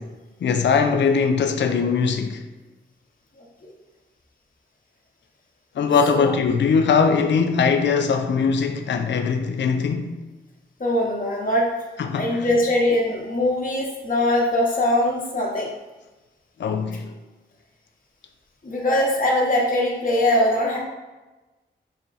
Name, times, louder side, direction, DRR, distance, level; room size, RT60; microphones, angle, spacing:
voice 1, 0.4-2.4 5.8-10.1 12.1-12.5 16.6-17.1, left 5 dB, 60° left, 0.4 m, -21 dB
voice 2, 10.8-11.7 12.2-15.7 18.6-20.8, left 1 dB, 40° left, 1.0 m, -21 dB
4.2 x 2.3 x 3.9 m
cardioid pair, 40°, 21 cm